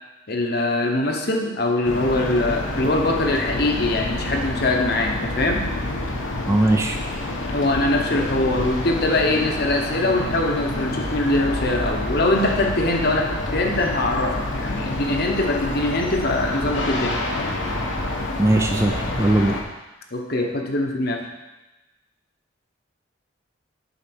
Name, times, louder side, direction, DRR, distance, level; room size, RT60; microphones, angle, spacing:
voice 1, 0.3-5.6 7.5-17.2 20.1-21.2, left 2 dB, 50° left, 2 dB, 1.0 m, -22 dB
sound 1, 1.8-19.6, left 2 dB, 75° left, 1.2 m, -28 dB
voice 2, 6.5-7.0 18.4-19.6, right 1 dB, 15° right, 4 dB, 0.4 m, -19 dB
8.2 x 4.1 x 6.0 m, 1.0 s
head